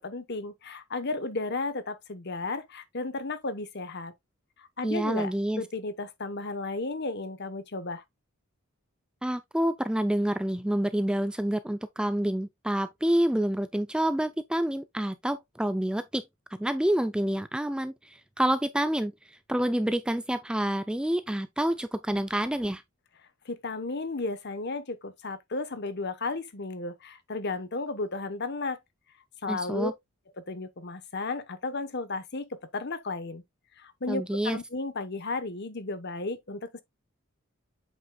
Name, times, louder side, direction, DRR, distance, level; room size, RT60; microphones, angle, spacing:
voice 1, 0.0-4.1 4.6-8.0 23.4-28.8 29.4-29.9 30.4-33.4 33.8-36.8, left 3 dB, 50° left, 1.0 m, -34 dB
voice 2, 4.8-5.6 9.2-16.2 16.5-22.8 29.5-29.9 34.1-34.6, right 1 dB, 5° right, 0.3 m, -28 dB
7.9 x 5.9 x 2.3 m
head